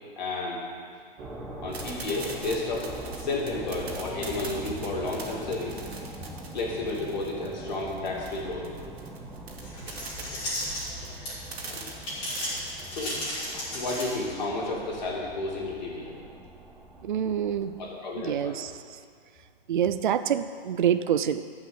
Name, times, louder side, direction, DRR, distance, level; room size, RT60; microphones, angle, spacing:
voice 1, 0.2-0.6 1.6-2.9 3.1-5.8 6.5-8.6 9.8-10.4 11.0-11.1 11.7-11.8 12.9-13.2 13.5-16.1 17.8-18.6, left 2 dB, 45° left, -3 dB, 2.8 m, -32 dB
sound 1, 1.2-17.8, right 1 dB, 10° right, 0.9 m, -42 dB
sound 2, 1.7-13.6, right 4 dB, 80° right, 2.3 m, -42 dB
sound 3, 9.6-11.5 12.0-14.4, left 1 dB, 15° left, 3.5 m, -34 dB
voice 2, 17.0-17.7 18.2-18.7 19.7-21.4, right 9 dB, 55° right, 11 dB, 0.4 m, -26 dB
12.0 x 5.6 x 7.9 m, 2.1 s
hypercardioid pair, 170°, 31 cm